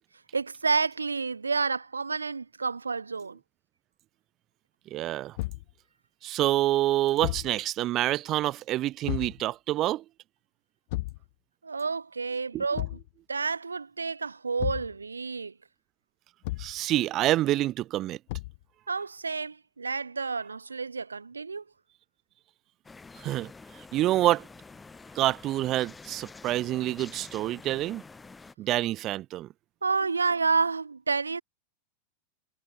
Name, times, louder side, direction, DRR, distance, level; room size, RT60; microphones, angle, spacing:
voice 1, 0.3-3.4 11.6-12.9 13.3-15.5 18.9-21.6 29.8-31.4, right 4 dB, 75° right, 0.8 m, -29 dB
voice 2, 4.9-5.4 6.2-10.0 12.5-12.6 16.6-18.2 23.2-24.5 25.1-28.0 28.6-29.5, right 14 dB, 35° right, 0.7 m, -27 dB
Thump thud, 5.4-5.7 7.2-7.6 9.0-9.4 10.9-11.2 12.7-13.1 14.6-14.9 16.4-16.8 18.3-18.6, left 20 dB, 50° left, 1.5 m, -33 dB
sound 1, 22.8-28.5, left 4 dB, 10° left, 4.7 m, -48 dB
figure-of-eight pair, 90°, 0 cm